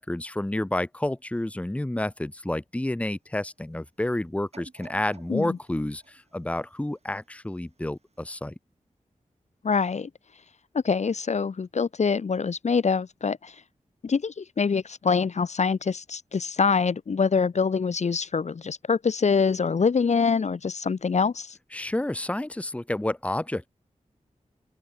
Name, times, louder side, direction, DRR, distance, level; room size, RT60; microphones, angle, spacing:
voice 1, 0.0-8.5 21.7-23.7, left 1 dB, 10° left, 0.9 m, -30 dB
sound 1, 4.5-7.6 8.1-8.2, right 4 dB, 55° right, 5.1 m, -53 dB
voice 2, 9.6-10.1 10.7-13.5 14.0-21.6, left 5 dB, 60° left, 0.8 m, -25 dB
open air
wide cardioid pair, 80°, 13 cm